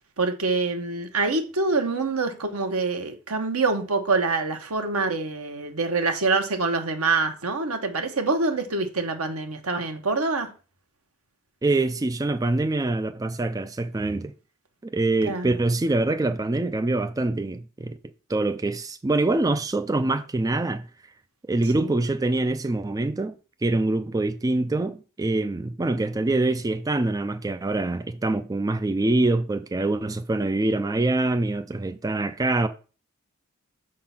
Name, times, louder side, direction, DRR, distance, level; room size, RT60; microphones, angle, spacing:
voice 1, 0.2-10.5 15.2-15.6 21.8-21.9, right 3 dB, 70° right, 1.2 m, -25 dB
voice 2, 11.6-14.3 14.8-18.0 18.3-20.8 21.5-23.4 23.6-32.7, right 2 dB, 15° right, 0.3 m, -25 dB
6.7 x 3.8 x 5.8 m
head